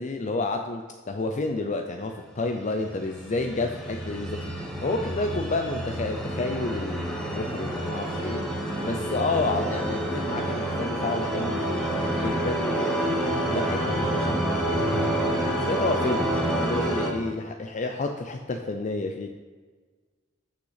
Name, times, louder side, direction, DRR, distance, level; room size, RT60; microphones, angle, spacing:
voice 1, 0.0-8.5 8.8-15.1 15.7-19.3, left 3 dB, 35° left, 5 dB, 0.4 m, -30 dB
sound 1, 2.8-17.1, right 1 dB, 5° left, 1.1 m, -28 dB
6.6 x 5.8 x 5.7 m, 1.5 s
head